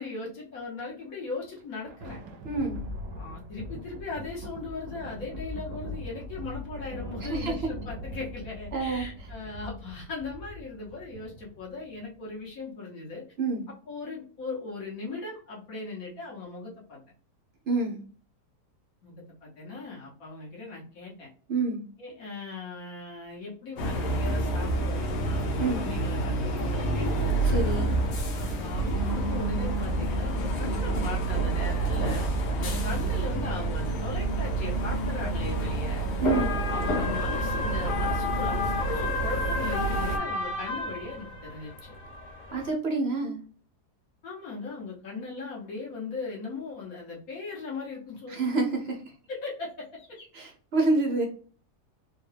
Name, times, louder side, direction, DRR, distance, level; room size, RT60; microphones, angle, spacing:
voice 1, 0.0-2.2 3.2-13.2 13.9-17.0 19.0-21.3 22.0-25.4 25.7-27.1 28.4-36.1 36.7-41.9 44.2-48.4 49.3-50.3, left 3 dB, 60° left, -3 dB, 1.7 m, -38 dB
Thunder, 1.4-12.2, equal, 80° right, 1.2 m, -41 dB
voice 2, 2.4-2.9 7.3-7.5 8.7-9.1 13.4-13.7 17.7-18.0 21.5-21.8 25.6-25.9 27.4-27.9 36.2-36.6 42.5-43.4 48.3-49.1 50.3-51.2, right 3 dB, 55° right, 1 dB, 0.7 m, -28 dB
sound 1, 23.8-40.2, right 2 dB, 75° left, 1.5 m, -28 dB
sound 2, 36.3-42.7, left 4 dB, 40° left, 0.8 m, -33 dB
4.2 x 2.3 x 3.3 m, 0.43 s
omnidirectional pair, 1.7 m